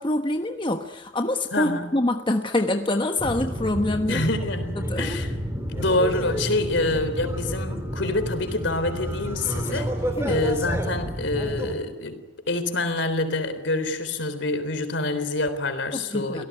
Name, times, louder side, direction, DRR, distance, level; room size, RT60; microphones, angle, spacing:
voice 1, 0.0-4.3 4.8-5.0 10.2-10.4 15.9-16.4, left 1 dB, 25° left, 5 dB, 1.2 m, -25 dB
voice 2, 1.5-1.9 4.1-5.3 5.7-9.9 10.3-12.2 12.5-16.4, left 2 dB, 65° left, 9 dB, 3.8 m, -26 dB
sound 1, 3.2-11.7, equal, 15° right, 3.6 m, -30 dB
25.5 x 18.0 x 9.8 m, 1.0 s
head